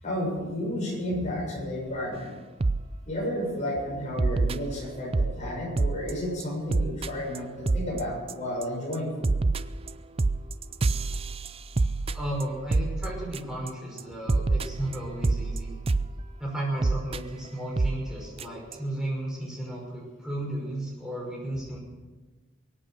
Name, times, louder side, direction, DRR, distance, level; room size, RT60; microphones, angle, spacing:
voice 1, 0.0-2.3 3.1-9.3, equal, 35° left, -3 dB, 7.0 m, -32 dB
sound 1, 2.6-2.8 3.3-3.5 4.2-5.4 5.8-6.1 6.4-6.5 6.7-7.1 7.3-7.4 7.7-8.0 8.3-8.6 8.9-13.7 14.0-14.1 14.3-16.1 16.8-17.2 17.8-18.0 18.4-18.5 18.7-18.8, right 3 dB, 30° right, 0.4 m, -26 dB
voice 2, 12.1-15.7 16.4-21.8, right 1 dB, 5° right, -3 dB, 5.6 m, -34 dB
23.0 x 8.9 x 6.3 m, 1.2 s
head